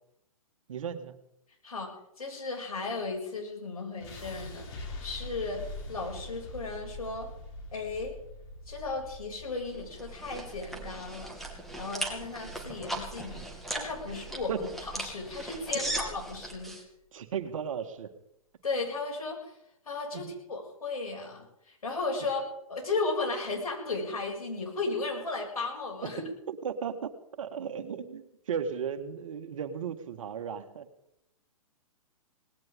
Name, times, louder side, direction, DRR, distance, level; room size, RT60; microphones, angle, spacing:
voice 1, 0.7-1.1 14.5-14.6 15.7-15.9 17.1-18.1 20.1-20.3 26.0-26.1 26.5-27.1 27.4-30.9, right 7 dB, 65° right, 8 dB, 1.9 m, -35 dB
voice 2, 2.2-4.7 5.0-5.6 5.9-7.3 7.7-8.1 8.7-11.4 11.8-16.8 18.6-19.5 19.9-22.4 22.7-26.2, left 3 dB, 85° left, 0 dB, 7.0 m, -35 dB
sound 1, 4.0-16.0, left 2 dB, 50° left, 6.6 m, -45 dB
sound 2, 9.7-16.8, right 1 dB, ahead, 2.8 m, -38 dB
19.5 x 17.5 x 3.8 m, 0.80 s
hypercardioid pair, 125°, 18 cm